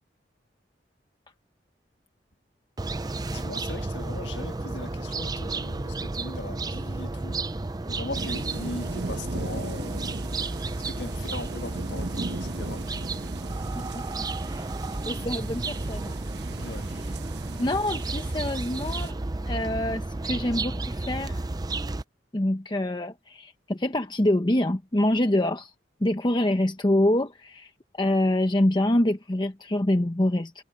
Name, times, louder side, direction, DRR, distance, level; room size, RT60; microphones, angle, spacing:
sound 1, 2.8-22.0, right 2 dB, 20° right, 0.5 m, -32 dB
voice 1, 3.3-7.4 7.9-10.1 10.7-12.9 16.6-16.9, left 2 dB, 90° left, 1.6 m, -39 dB
sound 2, 8.1-19.1, right 2 dB, 65° right, 1.2 m, -38 dB
voice 2, 13.7-14.7 15.0-16.2 16.6-17.2 17.5-19.2 19.4-21.4 22.3-25.7 26.0-30.6, left 1 dB, 25° left, 0.9 m, -26 dB
head